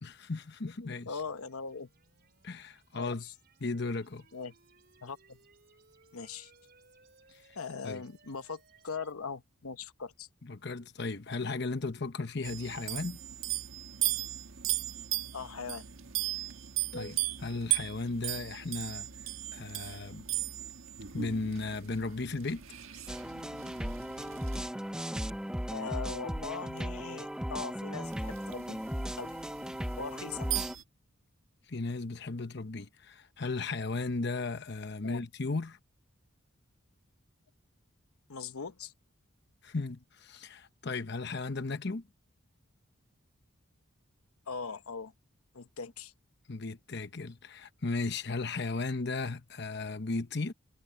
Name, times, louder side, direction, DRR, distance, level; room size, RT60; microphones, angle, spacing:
voice 1, 0.0-1.1 2.4-3.2 3.6-4.3 7.8-8.0 10.5-13.2 16.9-19.1 19.5-20.2 21.1-22.6 31.7-35.8 39.6-42.0 46.5-50.5, left 3 dB, 50° left, 0.9 m, -35 dB
voice 2, 0.6-1.9 2.9-3.3 4.3-4.5 5.0-5.4 6.1-6.5 7.5-10.3 15.3-15.8 25.7-28.8 29.2-29.4 30.0-30.6 35.0-35.2 38.3-38.9 44.5-45.1 45.5-46.1, left 5 dB, 85° left, 1.0 m, -40 dB
sound 1, 1.1-9.1, right 4 dB, 45° right, 5.0 m, -64 dB
sound 2, 12.4-24.7 26.8-26.9 28.0-30.8, right 14 dB, 70° right, 1.5 m, -37 dB
sound 3, 23.1-30.8, equal, 5° right, 0.8 m, -37 dB
head